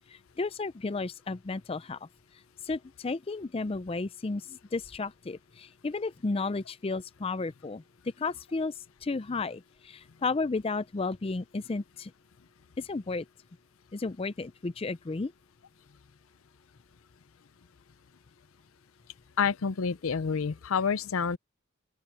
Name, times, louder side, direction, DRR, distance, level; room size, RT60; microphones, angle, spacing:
voice 1, 0.1-2.1 2.6-7.8 8.2-8.7 9.0-12.1 12.8-13.3 13.9-15.3, left 3 dB, 25° left, 0.4 m, -33 dB
voice 2, 19.4-21.4, left 6 dB, 80° left, 0.6 m, -28 dB
open air
head